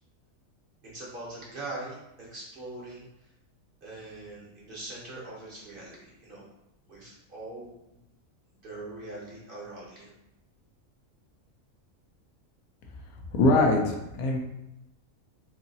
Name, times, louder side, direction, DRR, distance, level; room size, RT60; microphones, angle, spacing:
voice 1, 0.9-3.0 3.8-6.4 6.9-8.0 8.6-10.1, right 2 dB, 45° right, -5 dB, 0.9 m, -42 dB
voice 2, 13.3-14.4, left 2 dB, 90° left, 1 dB, 1.1 m, -22 dB
3.1 x 2.7 x 2.6 m, 0.87 s
omnidirectional pair, 1.5 m